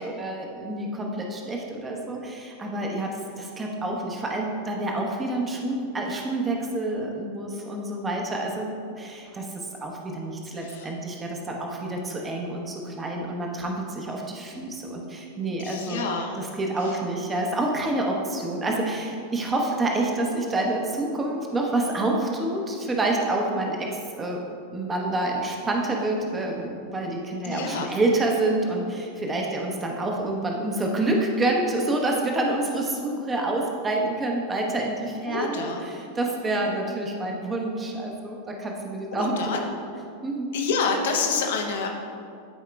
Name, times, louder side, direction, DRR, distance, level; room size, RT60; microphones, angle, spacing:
voice 1, 0.0-9.5 9.8-16.1 16.4-23.9 24.2-24.4 24.7-39.6 40.2-40.5, right 2 dB, 15° right, 0 dB, 0.9 m, -28 dB
voice 2, 10.6-10.9 15.6-16.4 16.8-17.0 27.4-28.0 35.3-35.8 39.1-39.6 40.5-41.9, left 4 dB, 55° left, 2 dB, 0.8 m, -28 dB
11.0 x 4.8 x 2.3 m, 2.5 s
figure-of-eight pair, 90°, 0 cm